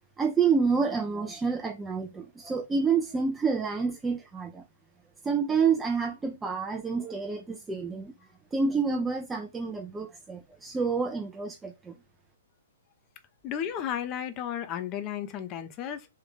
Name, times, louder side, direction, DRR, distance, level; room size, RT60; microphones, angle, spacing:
voice 1, 0.2-4.6 5.2-8.1 8.5-11.9, right 5 dB, 10° right, 0.5 m, -28 dB
voice 2, 13.4-16.1, left 9 dB, 30° left, 0.7 m, -33 dB
3.5 x 3.2 x 3.4 m
figure-of-eight pair, 120°, 0 cm